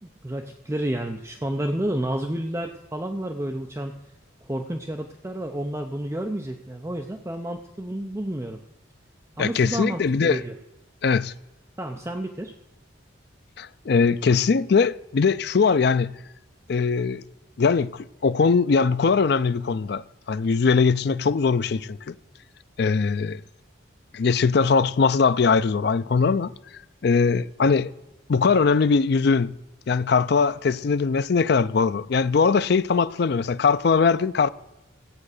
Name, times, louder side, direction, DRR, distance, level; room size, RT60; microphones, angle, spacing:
voice 1, 0.0-4.0 4.4-8.6 9.4-10.5 11.8-12.5, right 1 dB, 15° right, 0.6 m, -30 dB
voice 2, 9.4-10.4 11.0-11.3 13.6-16.1 16.7-17.2 17.6-22.1 22.8-23.4 24.1-26.5 27.0-27.9 28.3-29.5 29.9-34.5, left 5 dB, 55° left, 0.4 m, -21 dB
14.5 x 8.5 x 6.5 m
head